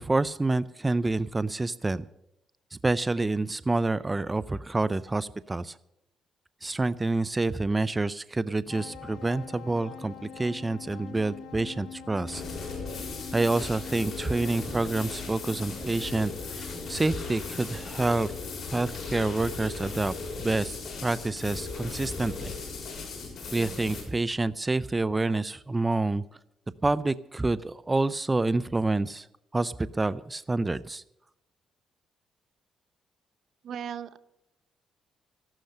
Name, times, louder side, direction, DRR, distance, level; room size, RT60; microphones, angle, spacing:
voice 1, 0.0-2.0 2.7-5.8 6.6-12.4 13.3-18.3 18.7-20.8 21.0-22.5 23.5-26.2 26.8-29.3 29.5-31.0, right 2 dB, 20° right, 16 dB, 0.4 m, -28 dB
sound 1, 8.7-23.6, left 5 dB, 75° left, 4.1 m, -46 dB
sound 2, 12.3-24.0, left 4 dB, 55° left, 6.9 m, -37 dB
voice 2, 33.6-34.2, right 8 dB, 65° right, 14 dB, 0.9 m, -36 dB
14.5 x 12.0 x 6.6 m, 0.83 s
cardioid pair, 90°, 0 cm